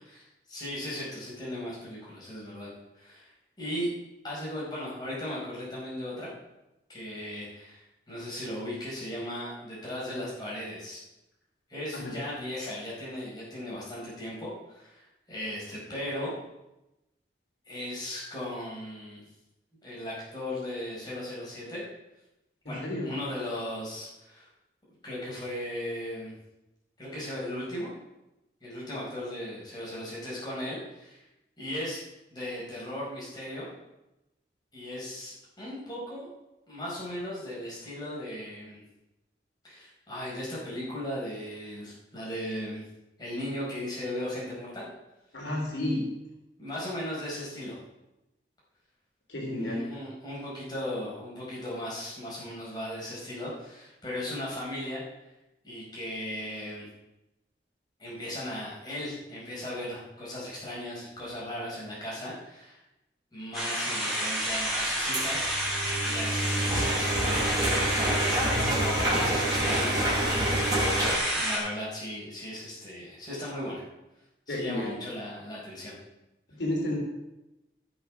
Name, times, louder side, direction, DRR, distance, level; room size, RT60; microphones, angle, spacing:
voice 1, 0.1-3.3 3.6-3.9 4.2-6.3 6.9-11.0 11.7-16.3 17.7-19.2 19.8-21.8 22.7-24.5 25.0-26.3 27.0-27.9 28.6-31.2 31.6-32.0 32.3-33.7 34.7-36.3 36.7-38.8 39.6-42.8 43.2-44.9 46.6-47.8 49.5-55.0 55.6-56.9 58.0-62.8 63.3-67.5 67.8-71.0 71.3-73.8 74.5-75.9, left 1 dB, 25° left, -6 dB, 4.7 m, -37 dB
voice 2, 22.6-23.1 45.3-46.1 49.3-49.9 74.5-74.9 76.5-77.0, left 1 dB, 85° left, -1 dB, 3.1 m, -31 dB
sound 1, 63.5-71.6, equal, ahead, 3.6 m, -30 dB
sound 2, 65.1-71.2, right 1 dB, 20° right, 3.3 m, -28 dB
14.5 x 6.2 x 6.0 m, 0.96 s
head